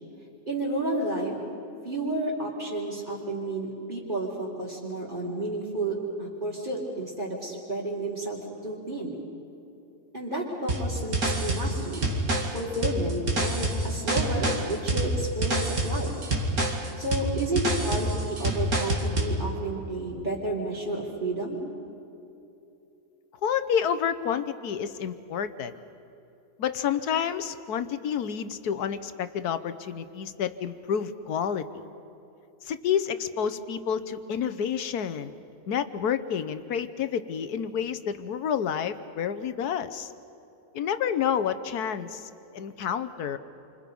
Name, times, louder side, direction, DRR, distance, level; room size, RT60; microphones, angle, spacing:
voice 1, 0.5-1.4 1.8-9.1 10.1-12.0 12.5-16.1 17.0-21.6, right 2 dB, 30° right, -9 dB, 3.9 m, -31 dB
sound 1, 10.7-19.4, right 1 dB, 65° right, 2.8 m, -27 dB
voice 2, 23.4-25.7 26.6-31.6 32.6-35.3 35.7-40.1 40.7-42.2 42.5-43.4, left 8 dB, 75° left, 11 dB, 1.5 m, -29 dB
29.5 x 25.5 x 5.4 m, 2.8 s
omnidirectional pair, 1.7 m